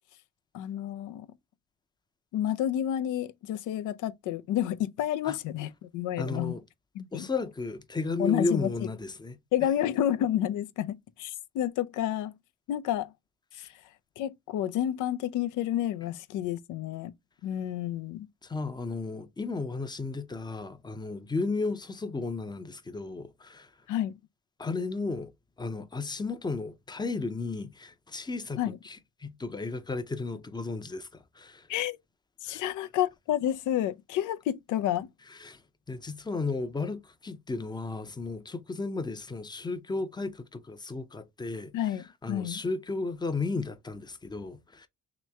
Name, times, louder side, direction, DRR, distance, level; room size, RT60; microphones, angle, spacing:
voice 1, 0.5-1.3 2.3-6.5 7.0-7.3 8.2-8.7 9.5-12.3 12.7-13.1 13.5-13.8 14.2-17.1 17.4-18.3 23.9-24.2 28.6-28.8 31.7-32.0 32.4-35.1 41.7-42.6, left 11 dB, 85° left, 0.5 m, -30 dB
voice 2, 6.2-6.6 7.1-9.4 18.4-23.7 24.6-25.3 25.6-28.6 28.8-31.7 32.5-32.6 35.3-35.6 35.9-41.9 42.2-44.9, left 3 dB, 15° left, 0.6 m, -34 dB
3.1 x 3.0 x 3.4 m
cardioid pair, 90°, 30 cm